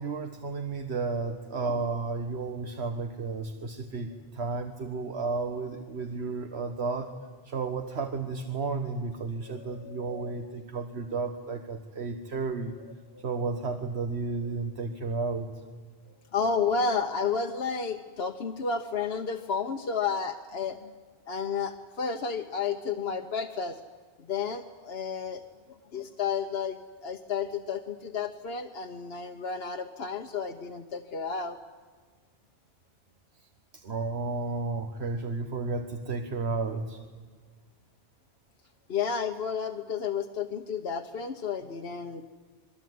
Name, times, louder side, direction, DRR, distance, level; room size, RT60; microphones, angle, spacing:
voice 1, 0.0-7.1 7.4-12.7 13.2-15.5 33.7-37.0, right 4 dB, 80° right, 6 dB, 1.6 m, -32 dB
voice 2, 9.5-10.3 13.1-13.2 16.3-20.9 21.3-23.8 24.2-25.4 25.7-26.8 27.0-31.6 38.9-42.2, left 5 dB, 70° left, 5 dB, 1.3 m, -32 dB
28.0 x 21.0 x 9.4 m, 1.5 s
omnidirectional pair, 1.1 m